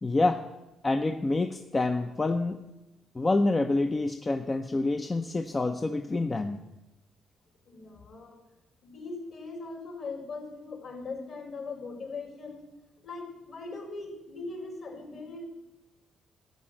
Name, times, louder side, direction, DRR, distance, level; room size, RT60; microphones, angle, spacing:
voice 1, 0.0-0.4 0.8-2.6 3.1-6.6, left 2 dB, 25° left, 6 dB, 0.6 m, -27 dB
voice 2, 7.7-8.4 8.8-12.7 13.0-15.5, left 3 dB, 60° left, 1 dB, 4.0 m, -40 dB
13.5 x 5.1 x 8.6 m, 0.96 s
cardioid pair, 90°, 0 cm